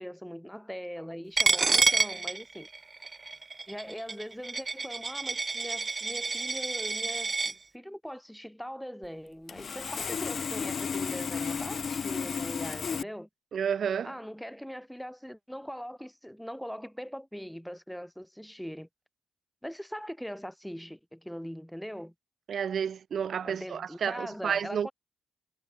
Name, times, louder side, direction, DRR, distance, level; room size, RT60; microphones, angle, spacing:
voice 1, 0.0-2.7 3.7-13.3 14.0-18.9 19.6-22.1 23.4-24.9, equal, ahead, 5.6 m, -41 dB
Coin (dropping), 1.4-7.5, right 3 dB, 25° right, 1.5 m, -29 dB
Sawing, 9.0-9.1 9.5-13.0, left 6 dB, 45° left, 1.2 m, -33 dB
voice 2, 13.5-14.1 22.5-24.9, right 7 dB, 55° right, 0.5 m, -31 dB
cardioid pair, 90°, 0 cm